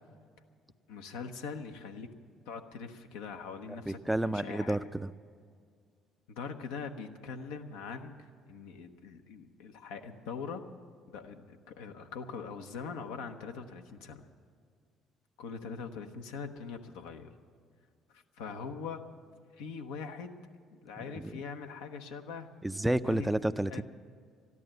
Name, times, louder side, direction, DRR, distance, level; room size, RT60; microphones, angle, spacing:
voice 1, 0.9-2.1 2.5-4.9 6.3-10.6 11.1-14.2 15.4-17.3 18.1-19.0 19.6-20.4 20.7-22.5 23.0-23.3 23.7-23.8, left 5 dB, 75° left, 5 dB, 0.9 m, -42 dB
voice 2, 3.9-5.1 21.1-21.3 22.6-23.8, right 1 dB, 5° right, 14 dB, 0.4 m, -30 dB
13.5 x 11.0 x 7.9 m, 2.2 s
hypercardioid pair, 55°, 0 cm